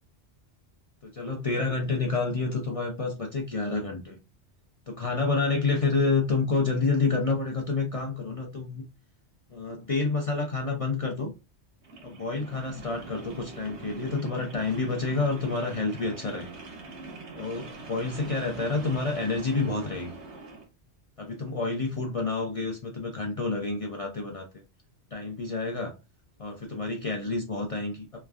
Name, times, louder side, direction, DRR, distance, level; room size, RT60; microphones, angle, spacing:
voice 1, 1.0-4.2 4.9-8.8 9.5-11.3 12.0-16.6 17.4-20.1 21.2-24.5 25.1-25.9 26.4-28.2, left 3 dB, 45° left, 0.5 m, -29 dB
sound 1, 11.8-20.7, right 3 dB, 80° right, 1.2 m, -43 dB
3.2 x 2.4 x 2.3 m
omnidirectional pair, 1.2 m